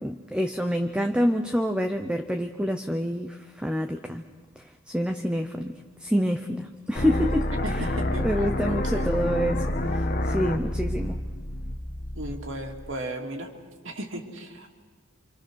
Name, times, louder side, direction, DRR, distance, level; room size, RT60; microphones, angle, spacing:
voice 1, 0.0-4.2 4.6-5.7 6.0-11.2, equal, 5° right, 5 dB, 0.7 m, -27 dB
sound 1, 7.0-12.9, left 1 dB, 45° left, 1.4 m, -28 dB
voice 2, 7.6-8.3 8.6-9.1 12.2-13.5 13.8-14.7, right 1 dB, 70° right, 2 dB, 2.7 m, -35 dB
27.0 x 26.0 x 6.4 m, 1.4 s
head